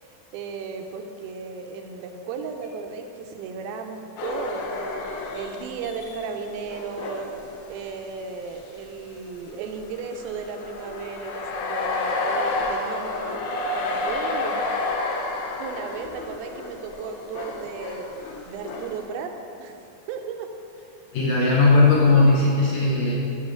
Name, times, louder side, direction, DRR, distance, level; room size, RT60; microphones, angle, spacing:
voice 1, 0.3-14.6 15.6-18.1 18.5-19.3 19.6-19.8 20.1-20.5, right 5 dB, 85° right, 4 dB, 2.5 m, -35 dB
sound 1, 4.2-8.3 8.8-8.9 9.7-19.0, left 2 dB, 85° left, 2.7 m, -30 dB
voice 2, 21.1-23.1, left 3 dB, 70° left, -4 dB, 1.7 m, -18 dB
10.5 x 3.9 x 6.4 m, 2.6 s
omnidirectional pair, 4.2 m